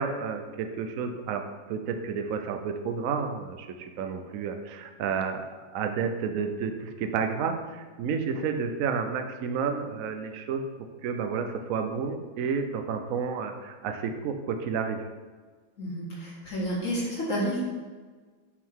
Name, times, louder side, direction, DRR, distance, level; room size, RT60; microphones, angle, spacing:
voice 1, 0.0-1.4 1.7-5.5 5.7-10.6 11.0-15.0, right 6 dB, 65° right, 6 dB, 0.8 m, -31 dB
voice 2, 15.8-17.6, equal, 40° left, -4 dB, 2.0 m, -30 dB
6.3 x 5.7 x 4.5 m, 1.4 s
omnidirectional pair, 2.2 m